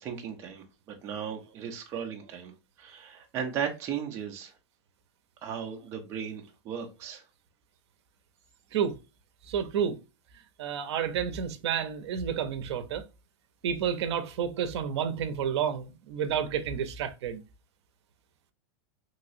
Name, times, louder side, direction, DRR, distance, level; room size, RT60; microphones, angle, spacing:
voice 1, 0.0-2.5 2.8-4.5 5.4-7.2, right 8 dB, 20° right, 0.4 m, -36 dB
voice 2, 9.5-10.0 10.6-13.1 13.6-17.4, right 8 dB, 65° right, 0.6 m, -30 dB
3.1 x 2.9 x 2.6 m
supercardioid pair, 175°, 15 cm